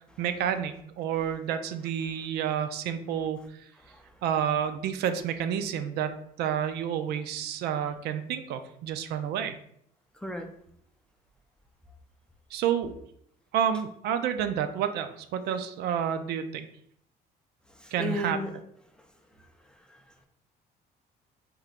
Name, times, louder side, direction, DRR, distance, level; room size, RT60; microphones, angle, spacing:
voice 1, 0.2-3.4 4.2-9.6 12.5-13.0 13.5-16.7 17.9-18.4, right 9 dB, 75° right, 9 dB, 0.4 m, -29 dB
voice 2, 3.8-4.1 10.1-10.5 17.7-18.5 19.9-20.0, left 1 dB, 5° left, 4 dB, 0.4 m, -35 dB
3.5 x 2.9 x 2.4 m, 0.68 s
cardioid pair, 110°, 17 cm